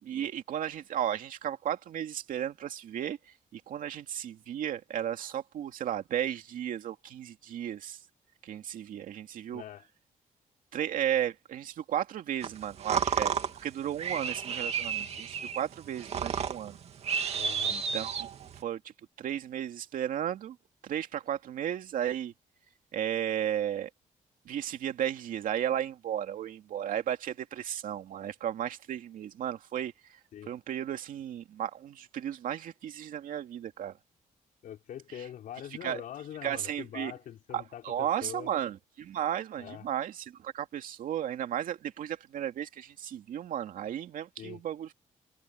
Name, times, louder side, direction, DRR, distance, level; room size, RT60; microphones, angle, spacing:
voice 1, 0.0-3.2 3.5-8.0 8.4-9.6 10.7-16.8 17.7-18.8 19.2-20.6 20.8-22.3 22.9-23.9 24.5-29.9 30.5-33.9 35.1-35.2 35.8-36.0 36.4-37.1 37.5-44.9, right 10 dB, 90° right, 2.6 m, -34 dB
voice 2, 9.5-9.8 17.3-17.8 30.3-30.5 34.6-38.5 39.6-39.8 44.4-44.6, left 10 dB, 90° left, 4.7 m, -43 dB
sound 1, 12.4-18.6, right 7 dB, 50° right, 2.4 m, -32 dB
wide cardioid pair, 175°, 14 cm